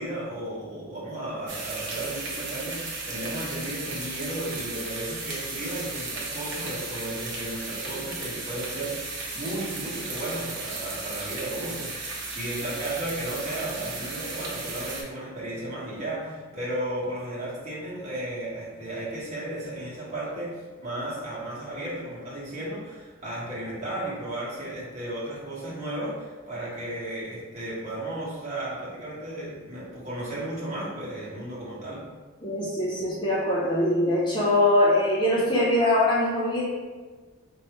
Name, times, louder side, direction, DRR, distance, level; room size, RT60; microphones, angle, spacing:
voice 1, 0.0-32.0, right 1 dB, 35° right, -9 dB, 1.5 m, -34 dB
sound 1, 1.5-15.0, right 3 dB, 55° right, 0.9 m, -35 dB
voice 2, 32.4-36.6, left 1 dB, 20° left, -6 dB, 0.6 m, -22 dB
4.6 x 3.0 x 3.0 m, 1.4 s
head